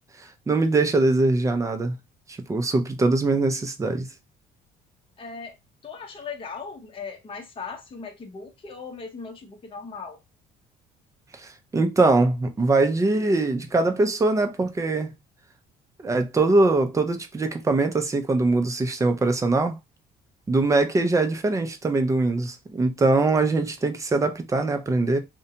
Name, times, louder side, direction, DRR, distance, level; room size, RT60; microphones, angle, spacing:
voice 1, 0.5-1.9 2.3-4.1 11.4-15.1 16.0-19.7 20.5-25.2, right 2 dB, 20° right, 0.5 m, -22 dB
voice 2, 5.2-5.6 5.8-10.2, left 5 dB, 30° left, 0.7 m, -38 dB
2.7 x 2.2 x 2.7 m
cardioid pair, 110°, 17 cm